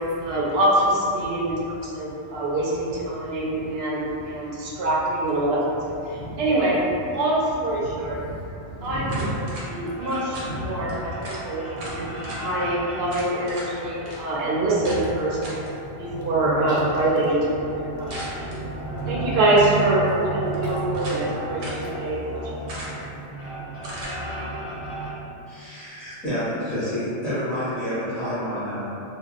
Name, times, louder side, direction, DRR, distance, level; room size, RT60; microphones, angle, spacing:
voice 1, 0.2-5.8 6.1-6.8 7.0-8.2 8.8-15.4 16.0-17.7 18.0-18.7 19.1-22.8, right 1 dB, 65° right, -5 dB, 0.8 m, -25 dB
voice 2, 1.9-2.4 3.1-4.8 6.0-6.4 7.8-12.5 13.8-14.3 15.8-16.3 16.7-16.8 18.0-19.4 21.8-21.9 22.6-23.3, equal, 80° left, -7 dB, 1.0 m, -38 dB
sound 1, 9.1-9.7 10.3-10.5 10.9-11.0 11.2-11.4 11.8-12.4 13.1-13.7 14.1-14.2 14.8-15.0 15.4-15.7 18.1-18.6 19.4-19.9 20.5-21.3 21.6-21.8 22.7-23.1 23.8-24.2, right 1 dB, 85° right, 1.0 m, -37 dB
sound 2, 9.6-25.1, right 2 dB, 55° left, 1.2 m, -34 dB
voice 3, 25.5-29.0, equal, ahead, -14 dB, 0.8 m, -29 dB
2.6 x 2.3 x 2.4 m, 2.7 s
omnidirectional pair, 1.2 m